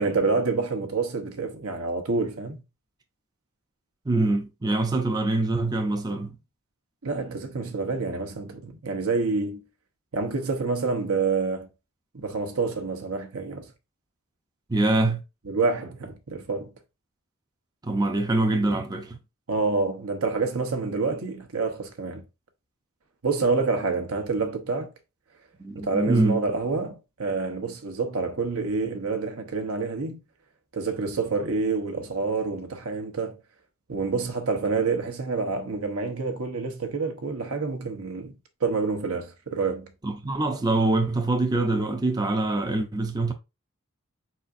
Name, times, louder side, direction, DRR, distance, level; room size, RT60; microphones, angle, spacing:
voice 1, 0.0-2.6 7.0-9.6 10.1-11.7 12.1-13.7 15.4-16.7 19.5-22.2 23.2-24.9 25.7-30.2 30.7-33.4 33.9-38.3 38.6-39.9, right 4 dB, 80° right, 1.0 m, -27 dB
voice 2, 4.1-6.4 14.7-15.2 17.8-19.2 25.6-26.4 40.0-43.3, right 2 dB, 20° right, 0.5 m, -24 dB
4.7 x 4.2 x 2.5 m
head